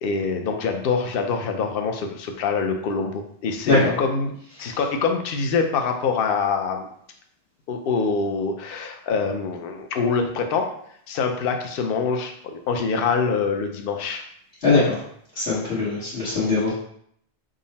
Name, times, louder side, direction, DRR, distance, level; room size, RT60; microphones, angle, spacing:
voice 1, 0.0-4.3 4.6-6.9 7.7-10.7 11.1-14.2, left 5 dB, 65° left, 4 dB, 0.7 m, -25 dB
voice 2, 3.6-4.0 14.6-15.0 15.3-16.7, left 3 dB, 85° left, -11 dB, 1.5 m, -21 dB
3.8 x 2.0 x 4.0 m, 0.67 s
omnidirectional pair, 1.1 m